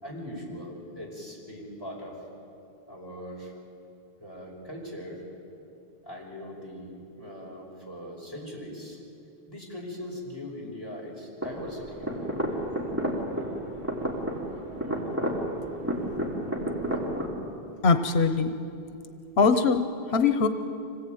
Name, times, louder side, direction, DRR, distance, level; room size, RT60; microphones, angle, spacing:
voice 1, 0.0-2.2 2.9-3.5 4.2-5.2 6.0-9.0 9.5-12.3, left 1 dB, 25° left, -3 dB, 5.6 m, -40 dB
sound 1, 11.4-17.3, equal, 15° right, 3.6 m, -31 dB
voice 2, 17.8-18.5 19.4-20.5, left 4 dB, 90° left, 9 dB, 1.2 m, -22 dB
25.5 x 18.0 x 9.2 m, 2.7 s
omnidirectional pair, 1.0 m